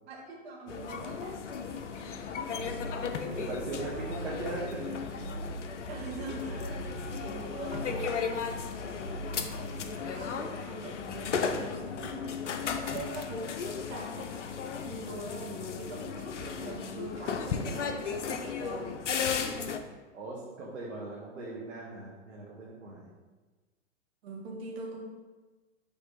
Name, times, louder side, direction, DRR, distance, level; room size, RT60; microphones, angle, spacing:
voice 1, 0.1-1.4 1.7-2.1 2.9-3.4 3.9-4.3 5.9-8.8 9.3-12.3 12.6-19.0 24.2-25.0, right 2 dB, 55° right, -1 dB, 1.6 m, -43 dB
sound 1, 0.7-19.8, left 6 dB, 65° left, 0.7 m, -35 dB
sound 2, 2.6-10.0, right 1 dB, 30° left, 1.7 m, -42 dB
voice 2, 3.1-5.2 6.5-6.7 20.1-23.1, right 2 dB, 75° right, -6 dB, 1.5 m, -40 dB
7.1 x 3.4 x 3.9 m, 1.3 s
figure-of-eight pair, 110°, 38 cm